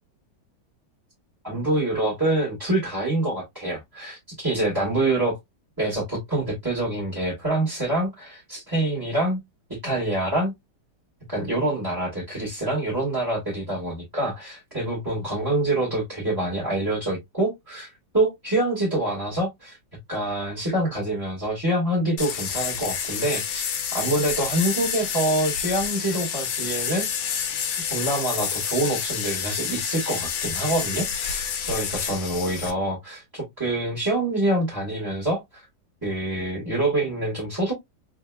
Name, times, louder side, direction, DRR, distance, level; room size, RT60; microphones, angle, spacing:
voice 1, 1.4-5.4 5.8-9.4 9.7-10.5 11.3-19.8 20.1-23.7 23.9-27.1 27.9-35.6 36.0-37.7, right 1 dB, 10° right, 1.7 m, -26 dB
sound 1, 22.2-32.7, left 8 dB, 80° left, 1.5 m, -29 dB
3.6 x 3.4 x 2.2 m
omnidirectional pair, 2.1 m